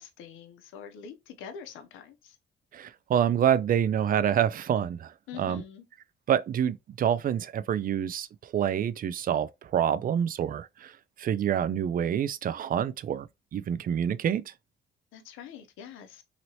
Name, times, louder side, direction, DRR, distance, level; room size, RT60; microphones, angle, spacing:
voice 1, 0.0-2.4 5.3-5.8 15.1-16.2, left 7 dB, 90° left, 0.7 m, -45 dB
voice 2, 2.7-5.1 5.4-5.6 6.3-13.3 13.5-14.5, right 9 dB, 45° right, 0.4 m, -27 dB
3.0 x 2.8 x 2.7 m
cardioid pair, 90°, 20 cm